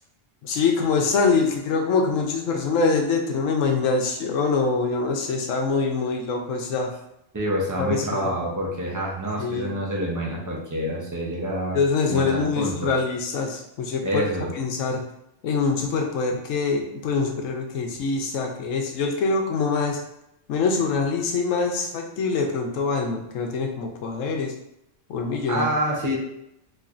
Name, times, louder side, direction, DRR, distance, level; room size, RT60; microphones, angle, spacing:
voice 1, 0.4-6.9 7.8-8.3 9.4-9.7 11.7-14.2 14.5-15.0 15.4-20.0 20.5-24.5 25.1-25.7, left 4 dB, 90° left, 3 dB, 1.0 m, -24 dB
voice 2, 7.3-11.8 12.1-12.9 14.0-14.5 25.5-26.2, equal, 20° right, -3 dB, 0.5 m, -27 dB
4.1 x 3.0 x 2.5 m, 0.81 s
omnidirectional pair, 1.3 m